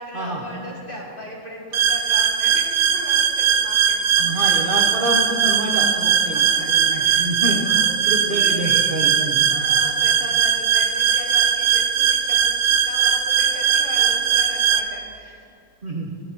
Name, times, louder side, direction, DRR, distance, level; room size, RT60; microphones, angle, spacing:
voice 1, 0.0-4.6 6.2-9.2 9.5-15.5, equal, 30° left, -3 dB, 2.1 m, -38 dB
sound 1, 1.7-14.8, right 8 dB, 80° right, 0.6 m, -19 dB
voice 2, 4.2-7.6 8.1-9.5 15.8-16.1, right 1 dB, 40° right, -1 dB, 0.9 m, -27 dB
14.0 x 10.0 x 4.4 m, 2.4 s
omnidirectional pair, 2.0 m